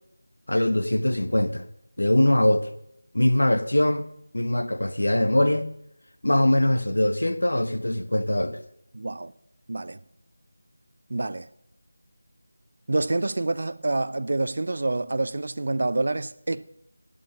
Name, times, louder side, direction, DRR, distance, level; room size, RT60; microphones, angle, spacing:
voice 1, 0.5-1.6 2.0-2.7 3.1-4.1 4.3-5.7 6.2-8.6, left 1 dB, 85° left, 1.2 m, -22 dB
voice 2, 8.9-9.3 9.7-10.0 11.1-11.5 12.9-16.6, right 2 dB, 55° right, 0.6 m, -27 dB
11.0 x 8.6 x 7.0 m
figure-of-eight pair, 170°, 0 cm